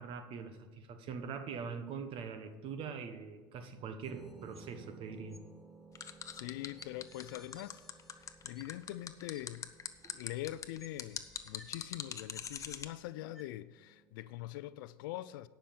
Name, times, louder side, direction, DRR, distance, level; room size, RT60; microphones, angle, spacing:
voice 1, 0.0-5.4 10.0-10.1, right 6 dB, 50° right, 1.1 m, -43 dB
sound 1, 4.0-5.0 5.3-5.4 6.3-6.4 6.8-9.0 9.3-9.4 10.3-10.4 10.8-13.0 13.3-13.4, left 1 dB, ahead, 0.9 m, -61 dB
sound 2, 4.1-14.3, right 4 dB, 20° right, 1.5 m, -59 dB
sound 3, 6.0-12.9, left 7 dB, 30° left, 0.8 m, -42 dB
voice 2, 6.3-7.8 8.2-9.7 10.1-15.5, left 15 dB, 80° left, 0.4 m, -43 dB
9.8 x 5.7 x 7.1 m
supercardioid pair, 100°, 11 cm